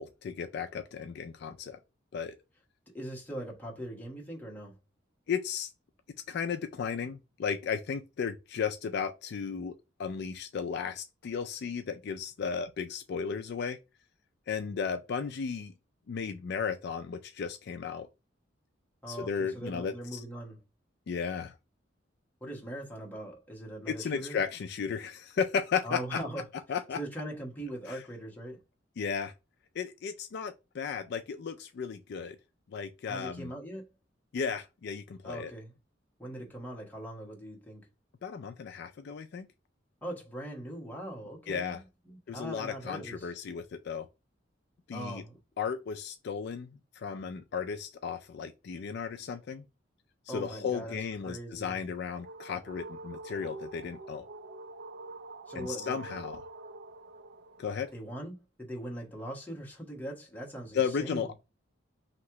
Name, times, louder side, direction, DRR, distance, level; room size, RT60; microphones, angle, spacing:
voice 1, 0.0-1.8 2.1-2.4 5.3-5.7 6.3-13.8 14.5-15.7 16.1-18.1 19.1-20.2 21.1-21.6 23.9-26.2 26.7-27.0 27.9-28.0 29.0-29.3 29.8-32.4 32.7-33.5 34.3-35.5 38.2-39.5 41.5-41.8 42.3-44.1 44.9-45.2 45.6-49.7 50.3-54.3 55.6-56.4 57.6-57.9 60.7-61.3, left 6 dB, 60° left, 0.4 m, -34 dB
voice 2, 2.9-4.8 19.0-20.6 22.4-24.4 25.8-26.4 26.9-28.6 33.1-33.9 35.2-35.7 36.2-37.9 40.0-43.3 44.9-45.3 50.3-51.8 55.5-56.0 57.9-61.3, right 1 dB, 10° left, 1.2 m, -41 dB
sound 1, 51.9-57.9, right 2 dB, 60° right, 0.5 m, -46 dB
3.1 x 2.8 x 4.5 m
head